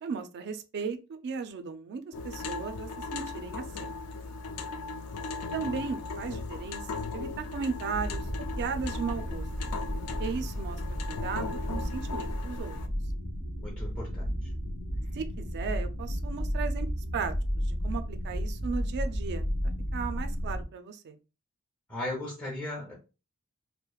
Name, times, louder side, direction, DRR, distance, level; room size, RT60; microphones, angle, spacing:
voice 1, 0.0-3.9 5.5-8.3 8.6-9.5 10.2-10.8 11.1-12.8 15.1-19.5 19.9-21.2, right 5 dB, 50° right, 0.3 m, -36 dB
sound 1, 2.1-12.9, left 3 dB, 80° left, 0.4 m, -38 dB
sound 2, 7.9-20.6, equal, 45° left, 0.8 m, -33 dB
voice 2, 13.6-14.5 21.9-22.9, left 1 dB, 5° left, 0.7 m, -37 dB
2.9 x 2.1 x 2.3 m
head